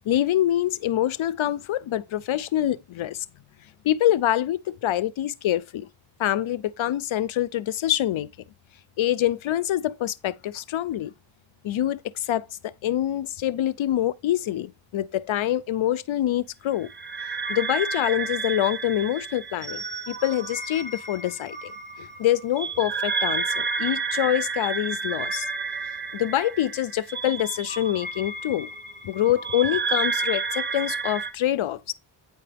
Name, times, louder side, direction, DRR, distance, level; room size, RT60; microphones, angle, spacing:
voice 1, 0.1-3.3 3.8-5.9 6.2-8.3 9.0-11.1 11.6-16.9 17.2-21.7 22.0-25.5 26.1-28.7 29.0-31.9, left 12 dB, 80° left, 0.5 m, -25 dB
sound 1, 16.9-31.3, right 4 dB, 20° right, 1.2 m, -31 dB
9.2 x 5.8 x 3.4 m
wide cardioid pair, 75°, 47 cm